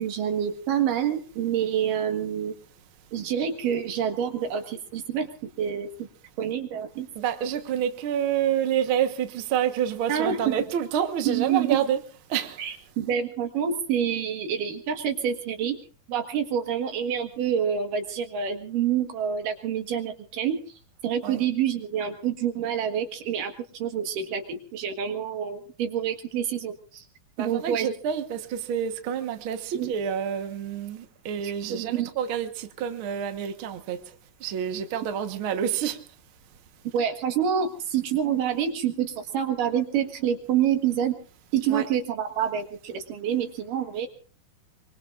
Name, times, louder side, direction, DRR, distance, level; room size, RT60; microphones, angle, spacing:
voice 1, 0.0-2.5 3.1-5.3 5.6-6.1 6.4-7.1 10.1-10.7 11.2-11.8 12.6-15.8 16.1-20.6 21.0-27.0 27.4-27.9 29.7-29.9 31.4-32.1 36.8-41.2 41.5-44.1, right 8 dB, 65° right, 3.0 m, -27 dB
voice 2, 7.1-12.6 21.2-21.4 27.4-34.1 34.4-36.0 41.7-41.9, right 9 dB, 80° right, 1.1 m, -28 dB
24.0 x 24.0 x 2.5 m
omnidirectional pair, 4.4 m